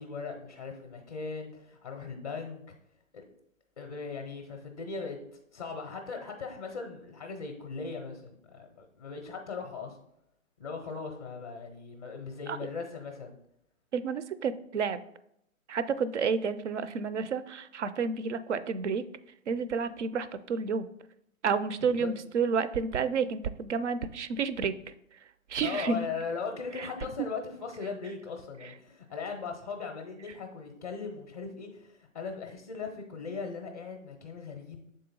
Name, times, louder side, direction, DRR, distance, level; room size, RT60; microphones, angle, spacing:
voice 1, 0.0-2.6 3.1-3.2 3.8-5.2 5.5-10.0 10.6-13.4 21.8-22.1 25.6-34.8, left 5 dB, 30° left, 3 dB, 0.5 m, -39 dB
voice 2, 13.9-15.0 15.7-19.0 19.5-20.9 21.4-25.2 25.5-26.0 26.7-26.9 28.6-28.7, right 5 dB, 55° right, 13 dB, 0.5 m, -30 dB
6.4 x 3.9 x 3.9 m, 0.75 s
figure-of-eight pair, 135°, 41 cm